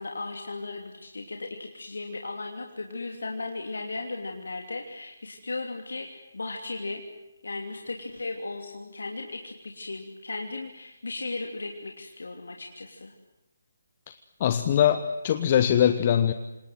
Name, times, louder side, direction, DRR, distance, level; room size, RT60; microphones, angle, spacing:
voice 1, 0.0-7.0 7.4-13.1, left 3 dB, 60° left, 2 dB, 3.1 m, -36 dB
voice 2, 14.4-16.3, left 10 dB, 30° left, 10 dB, 1.2 m, -22 dB
28.0 x 27.0 x 7.9 m, 0.96 s
figure-of-eight pair, 145°, 0 cm